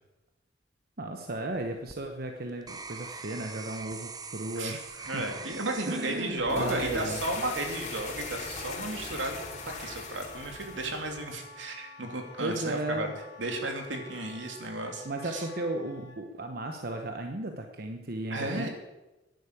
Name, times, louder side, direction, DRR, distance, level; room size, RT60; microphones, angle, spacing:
voice 1, 1.0-5.3 5.9-7.2 12.4-13.1 15.0-18.7, right 1 dB, 55° right, 4 dB, 1.1 m, -35 dB
sound 1, 1.5-7.7 8.3-8.7, right 4 dB, 20° right, 0.8 m, -44 dB
voice 2, 5.0-9.4 9.6-13.1 13.4-15.5 18.3-18.7, right 2 dB, 80° right, 3 dB, 2.9 m, -34 dB
sound 2, 6.3-11.4, left 3 dB, 40° left, 2.9 m, -40 dB
Wind instrument woodwind instrument, 8.6-16.2, left 3 dB, 65° left, 2.5 m, -50 dB
11.5 x 10.5 x 8.4 m, 1.0 s
head